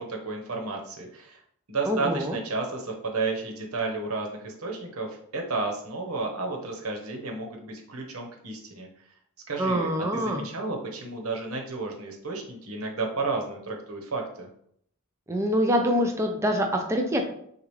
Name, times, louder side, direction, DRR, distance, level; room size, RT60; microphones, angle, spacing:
voice 1, 0.0-1.4 1.7-8.9 9.5-14.5, right 3 dB, 90° right, 1 dB, 1.1 m, -32 dB
voice 2, 1.9-2.4 9.6-10.4 15.3-17.3, equal, 15° right, 2 dB, 0.5 m, -25 dB
6.6 x 2.4 x 3.2 m, 0.68 s
head